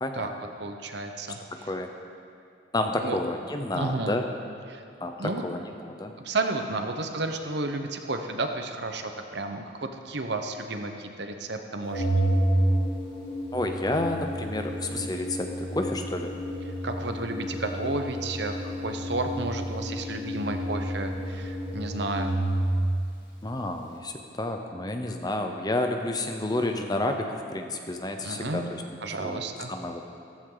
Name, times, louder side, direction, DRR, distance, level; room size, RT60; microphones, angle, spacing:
voice 1, 0.6-1.7 3.0-3.2 3.7-4.2 4.7-4.8 5.2-5.4 6.2-12.1 16.8-22.4 28.2-28.6 29.0-29.7, right 2 dB, 60° right, 5 dB, 1.0 m, -32 dB
voice 2, 1.5-1.9 2.7-4.2 5.0-6.1 13.5-16.3 23.4-28.6 29.2-29.4 29.7-30.1, left 1 dB, 20° left, 4 dB, 0.7 m, -30 dB
Organ, 11.9-22.9, right 1 dB, 65° left, 3.2 m, -30 dB
14.5 x 14.0 x 3.9 m, 2.4 s
head